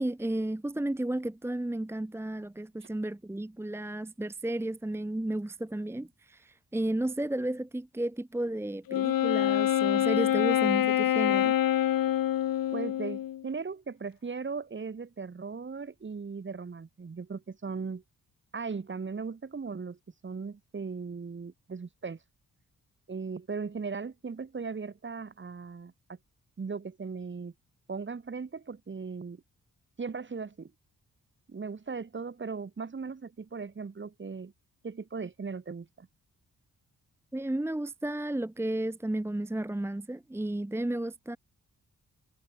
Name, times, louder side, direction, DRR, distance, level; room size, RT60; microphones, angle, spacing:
voice 1, 0.0-11.6 37.3-41.4, right 1 dB, 5° right, 0.9 m, -33 dB
Wind instrument woodwind instrument, 8.9-13.4, left 11 dB, 80° left, 1.0 m, -26 dB
voice 2, 12.7-18.0 18.5-22.2 23.1-26.2 26.6-27.5 27.9-29.4 30.0-30.7 31.5-34.5 34.8-36.1, right 5 dB, 35° right, 3.1 m, -38 dB
wide cardioid pair, 140°, 34 cm